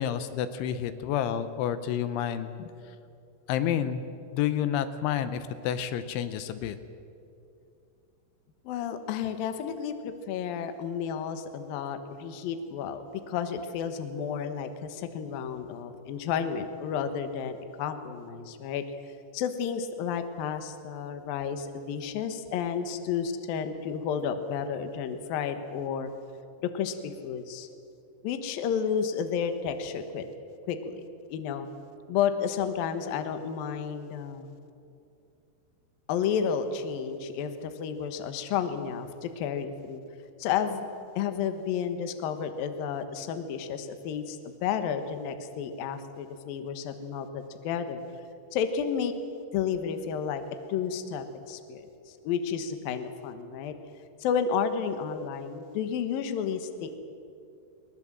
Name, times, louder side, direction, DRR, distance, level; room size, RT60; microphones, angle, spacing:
voice 1, 0.0-2.5 3.5-4.0 4.3-6.8, left 9 dB, 85° left, 11 dB, 3.2 m, -29 dB
voice 2, 8.6-18.8 19.3-26.1 26.7-27.7 28.2-30.3 30.7-31.0 31.3-31.7 32.1-34.5 36.1-40.0 40.4-40.9 41.2-48.0 48.5-49.2 49.5-50.4 50.7-53.7 54.2-57.0, left 7 dB, 65° left, 8 dB, 2.5 m, -31 dB
21.5 x 20.5 x 7.6 m, 2.6 s
omnidirectional pair, 5.5 m